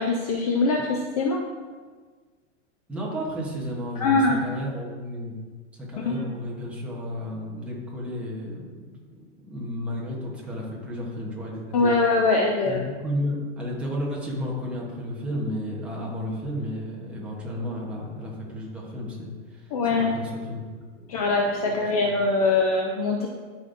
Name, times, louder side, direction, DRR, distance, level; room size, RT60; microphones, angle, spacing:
voice 1, 0.0-1.4 4.0-4.4 6.1-6.3 11.7-12.8 19.7-20.1 21.1-23.3, left 3 dB, 30° left, 1 dB, 0.4 m, -22 dB
voice 2, 2.9-5.3 5.7-9.2 9.5-11.9 12.6-20.6 21.6-22.1, left 1 dB, 5° right, -5 dB, 0.9 m, -33 dB
12.5 x 5.2 x 2.5 m, 1.5 s
supercardioid pair, 175°, 36 cm